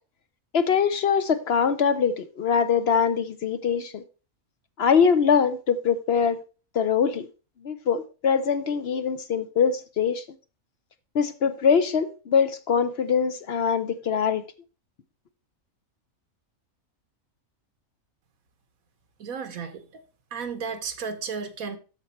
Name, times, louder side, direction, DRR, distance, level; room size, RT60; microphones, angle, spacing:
voice 1, 0.5-4.0 4.8-6.4 6.7-7.3 7.6-10.2 11.1-14.4, left 6 dB, 55° left, 0.8 m, -23 dB
voice 2, 19.2-20.0 20.3-21.8, right 5 dB, 90° right, 1.6 m, -33 dB
13.0 x 4.6 x 4.3 m
omnidirectional pair, 1.4 m